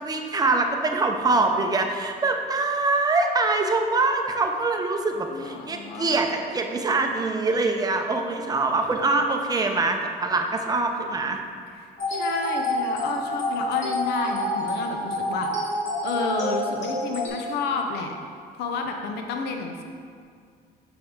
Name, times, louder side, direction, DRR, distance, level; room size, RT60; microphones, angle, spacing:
voice 1, 0.0-11.4, right 3 dB, 20° right, 4 dB, 0.7 m, -24 dB
voice 2, 5.3-6.1 12.1-18.1 18.6-19.8, left 4 dB, 80° left, 3 dB, 0.7 m, -31 dB
sound 1, 12.0-17.3, equal, 45° left, 1.7 m, -28 dB
6.9 x 5.5 x 3.8 m, 2.1 s
cardioid pair, 110°, 17 cm